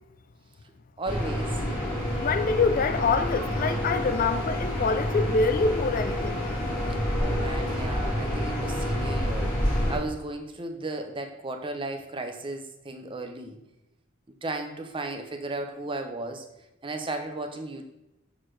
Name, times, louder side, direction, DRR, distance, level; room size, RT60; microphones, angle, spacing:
voice 1, 1.0-1.6 6.9-13.6 14.4-16.5 16.8-17.9, right 2 dB, 25° right, 0.6 m, -35 dB
sound 1, 1.1-10.0, equal, 20° left, 1.8 m, -28 dB
voice 2, 2.2-6.4, left 4 dB, 40° left, 0.3 m, -25 dB
6.2 x 6.1 x 3.2 m
head